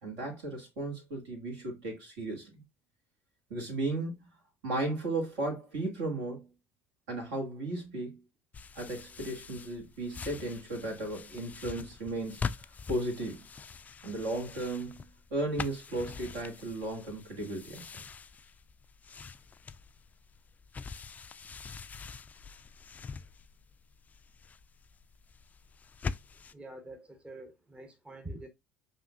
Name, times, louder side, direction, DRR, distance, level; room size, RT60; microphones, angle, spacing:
voice 1, 0.0-2.6 3.5-4.2 4.6-6.5 7.1-8.2 8.8-12.4 12.9-13.4 14.0-17.9, right 2 dB, 65° right, 1.9 m, -35 dB
sound 1, 8.5-26.5, left 5 dB, 25° left, 0.3 m, -44 dB
voice 2, 26.5-28.5, right 1 dB, 15° right, 0.9 m, -46 dB
7.3 x 2.8 x 2.4 m
figure-of-eight pair, 55°, 7 cm